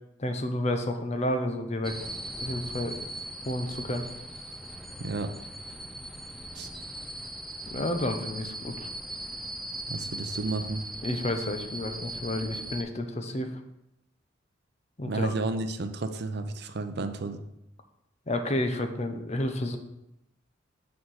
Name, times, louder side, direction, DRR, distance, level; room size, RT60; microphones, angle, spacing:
voice 1, 0.2-2.0 2.4-3.0 3.4-4.0 7.7-8.9 11.0-13.5 15.0-15.3 18.3-19.8, left 1 dB, 35° left, 6 dB, 0.8 m, -30 dB
sound 1, 1.8-12.8, right 1 dB, ahead, 0.5 m, -39 dB
voice 2, 5.0-5.3 6.5-6.7 9.9-10.8 15.1-17.4, right 3 dB, 55° right, 8 dB, 0.6 m, -32 dB
6.4 x 4.7 x 6.4 m, 0.86 s
head